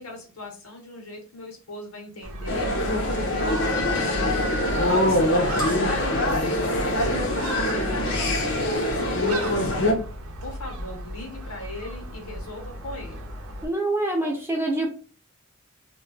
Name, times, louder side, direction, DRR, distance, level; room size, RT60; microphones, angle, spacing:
voice 1, 0.0-2.7 3.2-4.4 4.6-10.0 10.4-13.3 14.2-14.3, left 2 dB, 80° left, 3 dB, 0.9 m, -39 dB
Gull seagull, 2.2-13.7, equal, 80° right, 0.6 m, -35 dB
sound 1, 2.5-9.9, left 1 dB, 60° left, 0.6 m, -24 dB
voice 2, 13.6-14.9, right 2 dB, 10° right, 0 dB, 0.5 m, -26 dB
2.2 x 2.1 x 3.8 m, 0.38 s
head